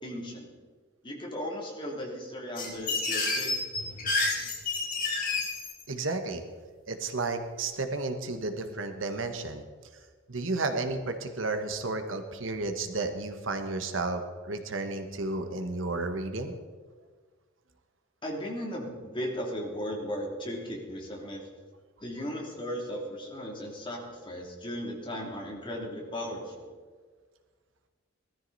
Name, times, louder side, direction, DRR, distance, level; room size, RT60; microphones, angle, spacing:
voice 1, 0.0-0.5 1.0-3.5 18.2-21.4 22.0-26.7, equal, 25° left, -1 dB, 3.0 m, -36 dB
sound 1, 2.5-5.8, left 3 dB, 45° left, 3.9 m, -29 dB
voice 2, 5.9-6.4 6.9-9.6 10.3-16.5, right 3 dB, 75° right, 7 dB, 1.3 m, -32 dB
19.0 x 13.5 x 4.1 m, 1.4 s
head